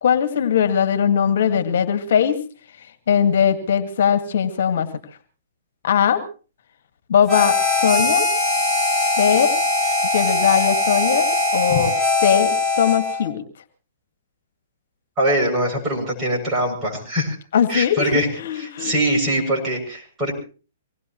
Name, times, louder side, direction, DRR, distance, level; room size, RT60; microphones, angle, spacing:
voice 1, 0.0-2.4 3.1-4.9 5.8-6.2 7.1-7.6 7.8-8.3 9.2-9.5 10.1-11.9 12.2-13.4 17.5-19.0, left 8 dB, 65° left, 9 dB, 1.9 m, -19 dB
Harmonica, 7.3-13.3, left 3 dB, 5° right, 3.7 m, -21 dB
voice 2, 15.2-17.4 17.7-18.3 18.6-20.3, right 1 dB, 20° right, -1 dB, 7.2 m, -22 dB
25.0 x 18.5 x 3.1 m, 0.37 s
hypercardioid pair, 135°, 0 cm